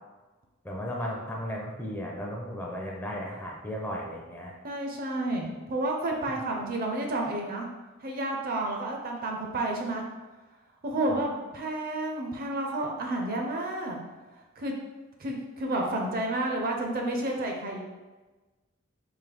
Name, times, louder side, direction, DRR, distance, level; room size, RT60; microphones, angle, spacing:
voice 1, 0.6-4.5, equal, 10° left, -2 dB, 0.5 m, -35 dB
voice 2, 4.6-7.7 8.0-10.0 10.8-14.0 14.6-14.7 15.2-17.8, right 1 dB, 45° right, 1 dB, 0.6 m, -30 dB
3.8 x 2.6 x 3.4 m, 1.2 s
head